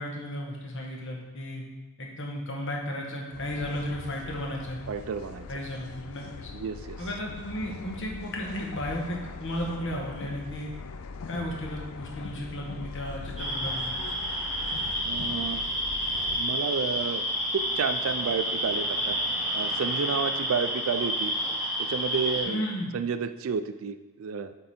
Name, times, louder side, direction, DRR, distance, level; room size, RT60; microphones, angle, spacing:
voice 1, 0.0-1.6 2.0-4.8 5.5-6.5 7.0-10.7 11.3-13.9 22.4-22.9, equal, 60° left, -1 dB, 1.3 m, -34 dB
sound 1, 3.3-16.4, left 4 dB, 75° left, 0.4 m, -41 dB
voice 2, 4.9-5.5 6.5-7.0 15.0-15.6 16.4-17.2 17.5-19.2 19.5-21.3 21.9-22.6 22.9-24.5, right 6 dB, 65° right, 10 dB, 0.4 m, -30 dB
sound 2, 13.4-22.4, equal, 5° right, 2.4 m, -29 dB
7.9 x 3.8 x 4.2 m, 1.1 s
head